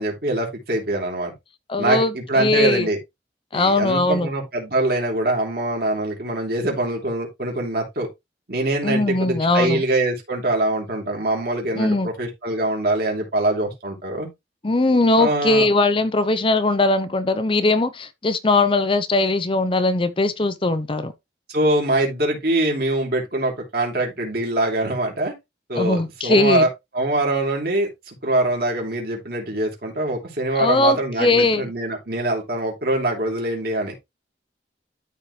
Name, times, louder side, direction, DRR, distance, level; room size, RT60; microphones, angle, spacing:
voice 1, 0.0-1.3 1.8-3.0 3.5-8.1 8.5-14.3 15.2-15.7 21.5-25.3 25.7-26.7 26.9-27.9 28.2-33.9, right 1 dB, 55° right, 3.3 m, -23 dB
voice 2, 1.7-2.9 3.5-4.3 8.8-9.8 11.8-12.1 14.6-21.1 25.8-26.6 30.6-31.6, left 2 dB, 30° left, 0.7 m, -20 dB
13.0 x 4.3 x 3.2 m
head